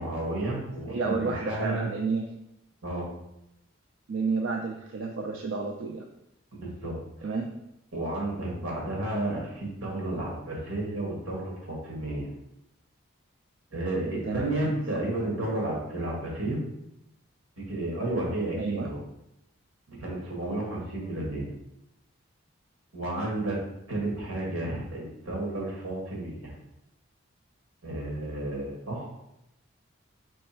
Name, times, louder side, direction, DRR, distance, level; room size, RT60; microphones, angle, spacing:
voice 1, 0.0-1.9 2.8-3.1 6.5-7.0 7.9-12.3 13.7-16.6 17.6-19.0 19.9-21.5 22.9-23.6 23.9-26.5 27.8-29.1, right 2 dB, 90° right, -3 dB, 1.6 m, -32 dB
voice 2, 0.9-2.3 4.1-6.1 7.2-7.5 14.2-14.5 14.9-15.0 18.6-18.9, right 4 dB, 70° right, 2 dB, 0.4 m, -30 dB
3.4 x 3.2 x 4.4 m, 0.83 s
head